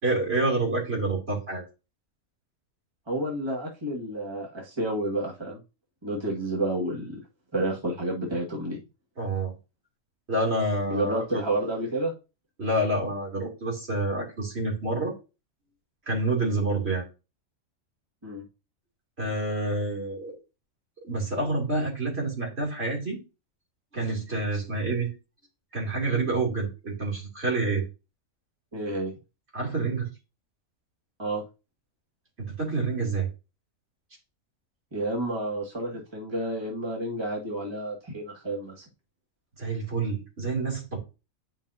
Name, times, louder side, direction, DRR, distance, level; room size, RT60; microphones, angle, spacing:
voice 1, 0.0-1.6 9.2-9.5 10.3-11.4 12.6-15.1 16.1-17.1 19.2-20.4 21.0-23.2 23.9-25.1 25.7-27.8 29.5-30.1 32.4-33.3 39.6-41.0, right 2 dB, 50° right, -1 dB, 3.2 m, -28 dB
voice 2, 3.1-5.6 6.0-7.2 7.5-8.8 10.9-12.1 18.2-18.4 28.7-29.1 31.2-31.4 34.9-38.8, right 1 dB, 20° right, -3 dB, 1.7 m, -30 dB
10.5 x 5.6 x 2.7 m, 0.30 s
omnidirectional pair, 1.4 m